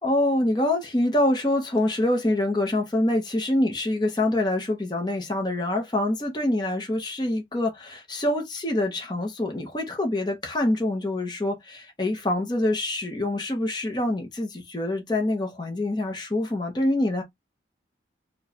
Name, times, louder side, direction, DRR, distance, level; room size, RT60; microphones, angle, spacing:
voice 1, 0.0-17.2, left 1 dB, 20° left, 0.8 m, -25 dB
4.4 x 2.3 x 2.8 m
head